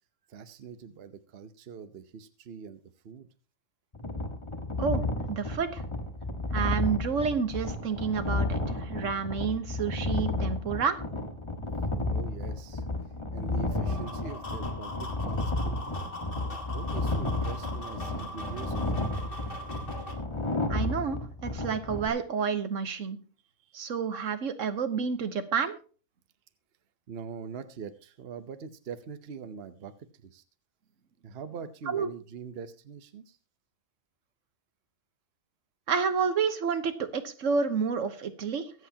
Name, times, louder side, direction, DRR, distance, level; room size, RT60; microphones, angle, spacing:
voice 1, 0.3-3.3 12.1-12.9 13.3-15.8 16.4-19.0 23.6-23.8 27.1-29.9 30.2-30.4 31.2-33.4, right 6 dB, 55° right, 11 dB, 1.0 m, -43 dB
sound 1, 3.9-22.1, left 2 dB, 25° left, 1.5 m, -32 dB
voice 2, 5.3-5.8 6.5-11.0 20.7-23.2 23.7-25.8 31.9-32.1 35.9-38.7, right 6 dB, 75° right, 10 dB, 1.4 m, -29 dB
sound 2, 13.7-20.1, left 1 dB, 45° left, 2.1 m, -41 dB
23.0 x 8.0 x 2.8 m, 0.36 s
omnidirectional pair, 1.3 m